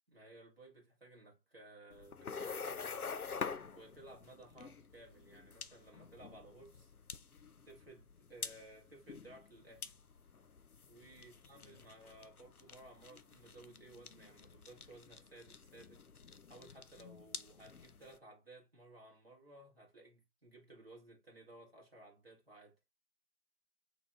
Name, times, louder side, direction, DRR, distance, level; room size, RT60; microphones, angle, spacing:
voice 1, 0.1-3.0 3.7-6.9 7.7-9.9 10.9-16.0 16.5-22.8, right 2 dB, 40° right, 1.7 m, -57 dB
sound 1, 1.9-18.2, left 5 dB, 65° left, 0.6 m, -48 dB
4.2 x 3.8 x 3.4 m
figure-of-eight pair, 175°, 47 cm